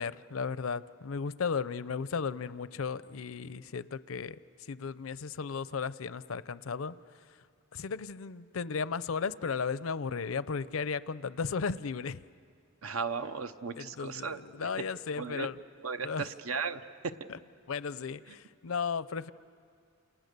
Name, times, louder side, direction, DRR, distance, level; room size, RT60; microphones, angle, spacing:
voice 1, 0.0-6.9 7.3-7.4 7.7-12.2 13.8-15.6 16.0-16.3 17.3-17.4 17.7-19.3, left 5 dB, 80° left, 16 dB, 0.6 m, -35 dB
voice 2, 12.8-14.7 15.2-15.5 15.8-17.1, right 5 dB, 85° right, 9 dB, 0.9 m, -36 dB
29.5 x 28.5 x 6.7 m, 2.2 s
head